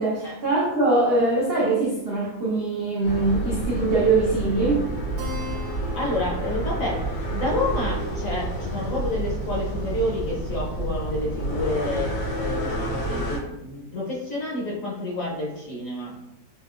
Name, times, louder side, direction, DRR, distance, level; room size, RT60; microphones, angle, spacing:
voice 1, 0.0-4.9, right 3 dB, 90° right, -5 dB, 0.5 m, -22 dB
sound 1, 3.0-13.4, right 1 dB, 85° left, 1.7 m, -29 dB
Keyboard (musical), 5.2-10.1, left 3 dB, 65° right, 1.0 m, -43 dB
voice 2, 5.9-7.0 7.3-16.2, left 1 dB, 60° left, -4 dB, 0.9 m, -29 dB
4.5 x 2.7 x 2.4 m, 0.92 s
omnidirectional pair, 2.0 m